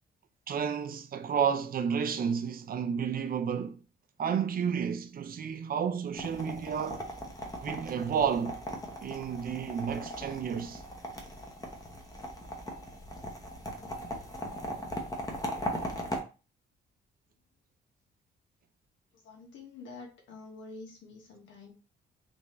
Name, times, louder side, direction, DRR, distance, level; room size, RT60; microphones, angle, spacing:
voice 1, 0.5-3.8 4.2-7.0 7.6-8.6 9.0-10.8, right 7 dB, 45° right, 0.6 m, -31 dB
sound 1, 6.1-16.2, equal, 20° left, 0.9 m, -39 dB
voice 2, 19.1-21.7, left 3 dB, 70° left, 1.2 m, -47 dB
3.4 x 2.7 x 3.1 m
cardioid pair, 90°, 20 cm